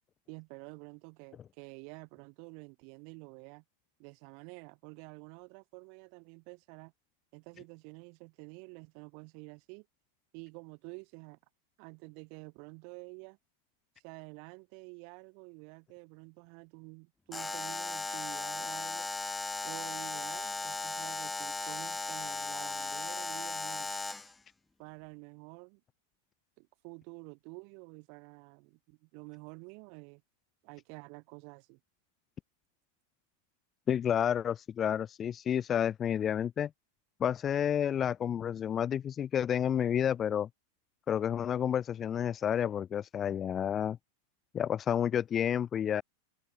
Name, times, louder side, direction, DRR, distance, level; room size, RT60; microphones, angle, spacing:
voice 1, 0.3-3.6 4.0-6.9 7.3-9.9 10.3-11.4 11.8-13.4 14.0-19.1 19.6-23.9 24.8-25.8 26.6-30.2 30.6-31.8, right 40 dB or more, 45° right, 5.5 m, -49 dB
Alarm, 17.3-24.3, left 3 dB, 10° left, 2.0 m, -37 dB
voice 2, 33.9-36.7 37.2-40.5 41.1-44.0 44.5-46.0, left 9 dB, 25° left, 0.3 m, -30 dB
figure-of-eight pair, 90°, 0 cm